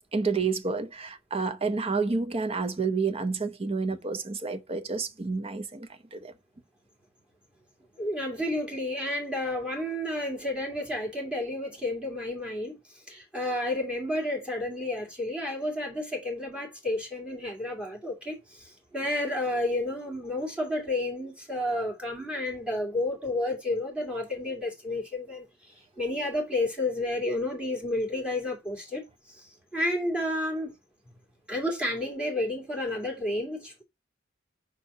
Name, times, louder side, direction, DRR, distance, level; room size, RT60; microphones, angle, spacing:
voice 1, 0.1-6.3, right 4 dB, 30° right, 0.7 m, -29 dB
voice 2, 8.0-12.8 13.1-30.7 31.5-33.8, left 1 dB, 5° right, 2.7 m, -31 dB
5.5 x 4.5 x 5.4 m
head